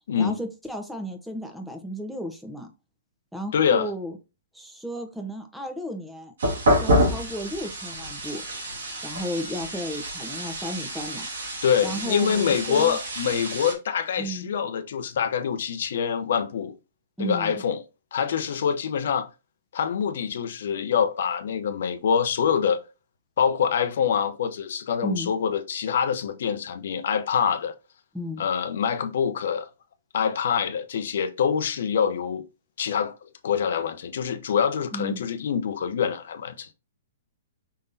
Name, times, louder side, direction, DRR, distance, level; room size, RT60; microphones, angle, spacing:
voice 1, 0.2-2.7 3.3-4.2 4.5-6.3 6.8-8.4 9.0-11.3 11.8-13.0 14.2-14.5 17.2-17.6 25.0-25.3 28.1-28.4 34.9-35.2, equal, ahead, 1.0 m, -33 dB
voice 2, 3.5-3.9 11.6-16.7 17.2-17.8 18.1-19.3 19.7-22.8 23.4-27.7 28.4-29.7 30.1-32.4 32.8-33.1 33.4-36.7, left 7 dB, 65° left, 0.7 m, -25 dB
sound 1, 6.4-13.7, equal, 70° right, 2.4 m, -28 dB
5.4 x 3.5 x 2.7 m
hypercardioid pair, 115°, 0 cm